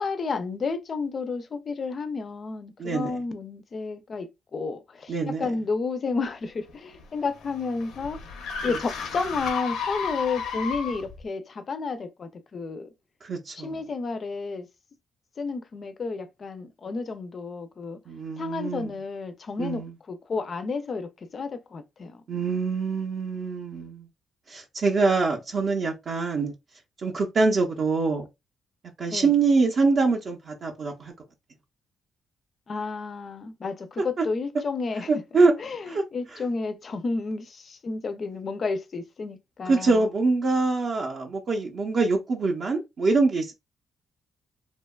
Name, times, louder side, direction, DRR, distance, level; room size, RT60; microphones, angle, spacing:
voice 1, 0.0-8.2 8.6-12.9 13.5-14.7 15.4-18.0 18.4-19.8 20.1-22.2 29.1-29.3 32.7-35.1 35.6-40.1, left 4 dB, 35° left, 0.4 m, -31 dB
voice 2, 2.8-3.2 5.1-5.5 8.7-8.8 13.2-13.8 18.1-18.9 19.6-19.9 22.3-24.1 24.5-26.5 27.0-28.3 29.0-31.1 34.0-34.2 35.1-35.5 35.9-36.0 39.7-43.5, right 3 dB, 45° right, 0.5 m, -24 dB
sound 1, 6.7-11.2, left 6 dB, 85° left, 0.6 m, -33 dB
2.7 x 2.2 x 2.2 m
cardioid pair, 150°, 0 cm